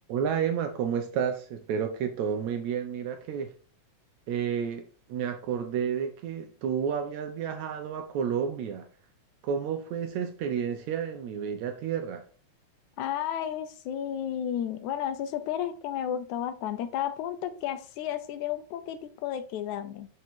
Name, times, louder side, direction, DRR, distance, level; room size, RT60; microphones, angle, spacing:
voice 1, 0.1-3.5 4.3-8.9 9.4-12.3, right 7 dB, 75° right, 1.9 m, -31 dB
voice 2, 13.0-20.1, left 10 dB, 80° left, 2.0 m, -32 dB
6.3 x 4.7 x 4.4 m
omnidirectional pair, 3.5 m